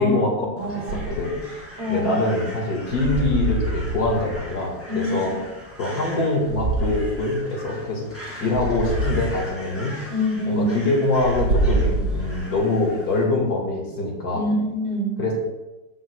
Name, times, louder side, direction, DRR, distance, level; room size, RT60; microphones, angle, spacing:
voice 1, 0.0-5.3 5.8-8.1 8.4-10.1 10.5-14.4 15.2-15.3, left 2 dB, 55° left, -2 dB, 2.2 m, -24 dB
Crow, 0.6-13.2, equal, 5° left, 2.2 m, -41 dB
voice 2, 0.6-1.0 1.8-2.1 4.9-5.3 10.1-10.8 14.3-15.1, left 1 dB, 35° right, -3 dB, 2.5 m, -25 dB
sound 1, 0.9-1.3 2.9-4.5 6.5-7.1 8.5-9.3 11.1-12.5, right 2 dB, 65° right, 1.8 m, -25 dB
14.5 x 6.4 x 2.2 m, 1.1 s
omnidirectional pair, 2.0 m